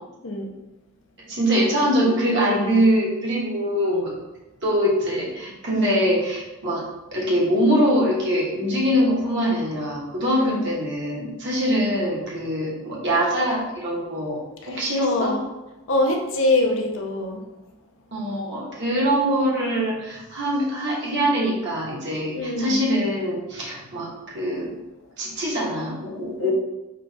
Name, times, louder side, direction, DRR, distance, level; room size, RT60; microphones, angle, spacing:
voice 1, 1.2-4.1 4.6-6.8 7.1-14.4 14.7-15.3 18.1-24.7 25.2-26.5, equal, 50° right, -5 dB, 1.2 m, -23 dB
voice 2, 2.4-2.8 10.4-10.7 14.6-15.4 15.9-17.4 22.3-22.8 26.4-26.5, left 2 dB, 55° left, 2 dB, 0.6 m, -24 dB
3.8 x 2.4 x 4.6 m, 1.0 s
head